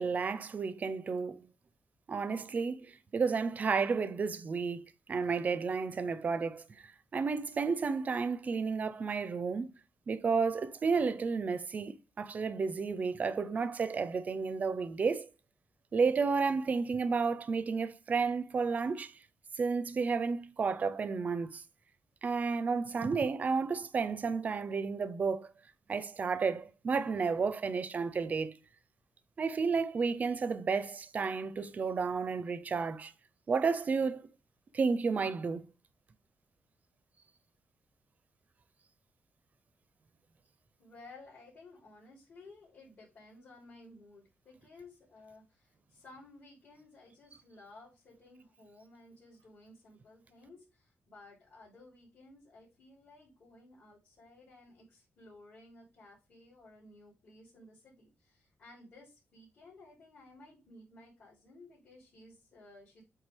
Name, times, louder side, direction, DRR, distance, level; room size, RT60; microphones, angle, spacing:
voice 1, 0.0-1.4 2.1-2.9 3.1-6.6 7.1-9.7 10.1-15.3 15.9-19.1 19.6-21.6 22.2-25.5 25.9-28.5 29.4-33.1 33.5-34.3 34.7-35.6, right 5 dB, 35° right, 0.6 m, -32 dB
voice 2, 40.8-63.0, left 2 dB, 50° left, 3.6 m, -56 dB
8.2 x 3.8 x 3.3 m
wide cardioid pair, 145°, 4 cm